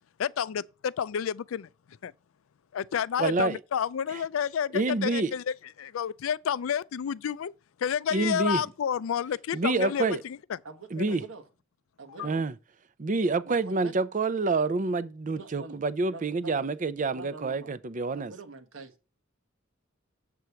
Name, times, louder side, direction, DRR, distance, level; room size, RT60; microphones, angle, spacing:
voice 1, 0.2-1.7 2.0-2.1 2.7-7.5 7.8-10.6 12.2-12.3, left 8 dB, 90° left, 0.4 m, -30 dB
voice 2, 3.2-3.6 4.7-5.3 8.1-8.6 9.5-10.2 10.9-11.2 12.2-12.5 13.0-18.3, right 3 dB, 40° right, 0.5 m, -27 dB
voice 3, 9.8-10.2 10.6-11.4 12.0-12.4 13.4-13.9 15.3-15.8 16.1-16.7 17.1-17.7 18.1-19.0, right 4 dB, 85° right, 1.2 m, -44 dB
7.6 x 4.7 x 6.9 m
head